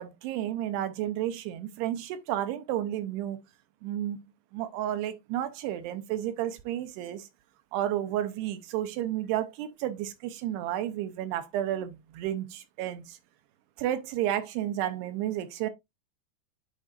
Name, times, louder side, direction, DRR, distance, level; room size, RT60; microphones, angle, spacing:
voice 1, 0.0-3.4 3.8-4.2 4.5-7.3 7.7-13.2 13.8-15.7, right 12 dB, 80° right, 2.6 m, -32 dB
11.0 x 4.5 x 2.4 m
omnidirectional pair, 5.0 m